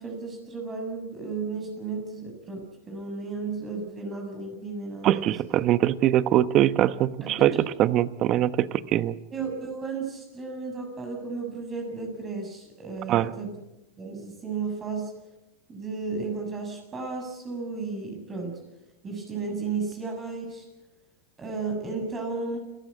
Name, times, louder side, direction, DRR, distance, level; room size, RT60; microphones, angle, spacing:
voice 1, 0.0-5.3 7.2-7.6 9.3-13.6 14.0-15.1 15.7-18.6 19.0-20.7 21.4-22.6, right 4 dB, 20° right, 2 dB, 6.9 m, -34 dB
voice 2, 5.0-7.5 7.8-9.2 13.1-13.3, right 12 dB, 40° right, 14 dB, 1.0 m, -22 dB
29.0 x 15.0 x 8.6 m, 1.0 s
supercardioid pair, 125°, 0 cm